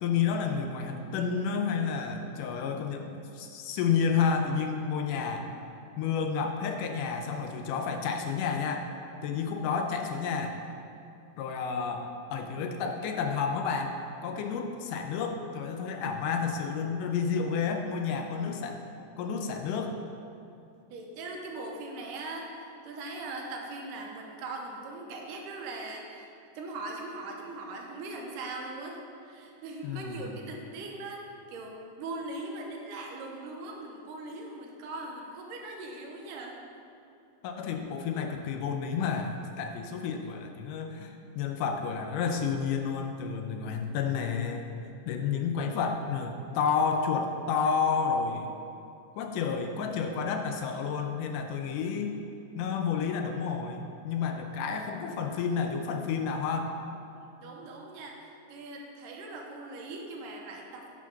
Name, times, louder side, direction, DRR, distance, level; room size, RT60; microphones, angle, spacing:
voice 1, 0.0-5.5 6.0-8.9 9.2-10.6 11.4-18.8 19.2-19.9 29.8-30.4 37.4-44.7 45.1-48.5 49.2-52.1 52.6-56.8, left 6 dB, 80° left, 4 dB, 2.1 m, -30 dB
voice 2, 20.9-36.6 57.4-60.9, right 2 dB, 80° right, 0 dB, 2.5 m, -40 dB
9.7 x 4.8 x 5.8 m, 2.7 s
omnidirectional pair, 3.8 m